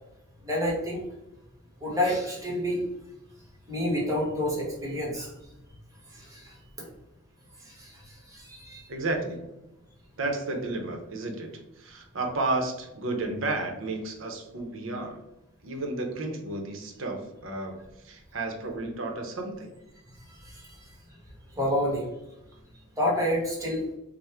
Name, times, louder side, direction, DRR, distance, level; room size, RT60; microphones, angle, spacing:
voice 1, 0.4-1.0 1.8-2.8 3.7-5.3 6.1-6.6 7.6-8.9 20.3-20.8 21.5-22.1 23.0-23.8, left 1 dB, 15° right, -3 dB, 1.1 m, -29 dB
voice 2, 8.9-9.4 10.2-11.5 11.8-15.2 15.6-17.8 18.0-19.7, right 2 dB, 70° right, 3 dB, 0.7 m, -32 dB
3.5 x 2.1 x 4.2 m, 0.92 s
head